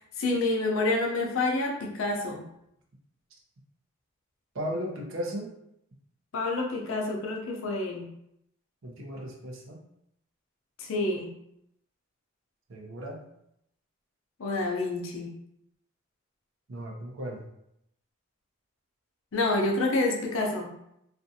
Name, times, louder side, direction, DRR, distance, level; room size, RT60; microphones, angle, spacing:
voice 1, 0.0-2.4 6.3-8.1 10.8-11.3 14.4-15.3 19.3-20.7, left 2 dB, 70° left, 1 dB, 0.5 m, -28 dB
voice 2, 4.5-5.5 8.8-9.8 12.7-13.2 16.7-17.4, equal, 70° right, -1 dB, 0.6 m, -36 dB
2.5 x 2.3 x 2.6 m, 0.78 s
head